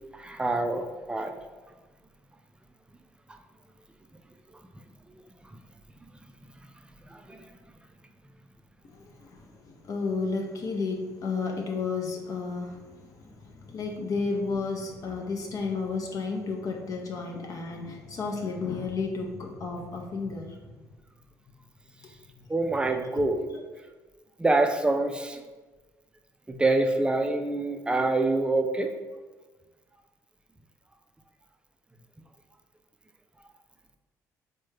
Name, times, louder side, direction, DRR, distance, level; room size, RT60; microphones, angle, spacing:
voice 1, 0.1-1.3 5.5-5.6 7.1-7.5 22.5-23.4 24.4-25.4 26.5-28.9, right 2 dB, 10° right, 6 dB, 0.3 m, -26 dB
voice 2, 8.8-20.7 22.0-22.1 22.4-22.5 23.5-23.6, left 4 dB, 45° left, 1 dB, 0.5 m, -32 dB
3.4 x 2.1 x 3.2 m, 1.3 s
supercardioid pair, 75°, 8 cm